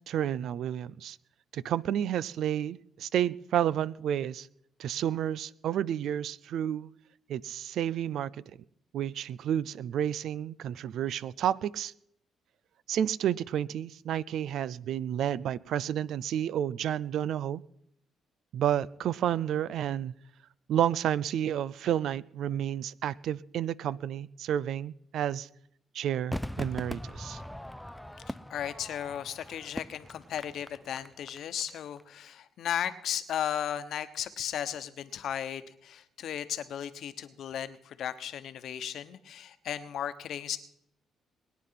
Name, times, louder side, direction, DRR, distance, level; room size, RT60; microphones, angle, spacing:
voice 1, 0.1-1.2 1.5-4.5 4.8-6.9 7.3-8.3 8.9-11.9 12.9-17.6 18.5-20.1 20.7-25.5 25.9-27.4, right 10 dB, 75° right, 0.5 m, -30 dB
Crowd / Fireworks, 26.3-31.7 32.0-32.1, left 1 dB, 5° left, 0.5 m, -40 dB
voice 2, 28.3-40.6, left 9 dB, 70° left, 1.1 m, -35 dB
21.0 x 9.6 x 5.8 m
cardioid pair, 90°, 0 cm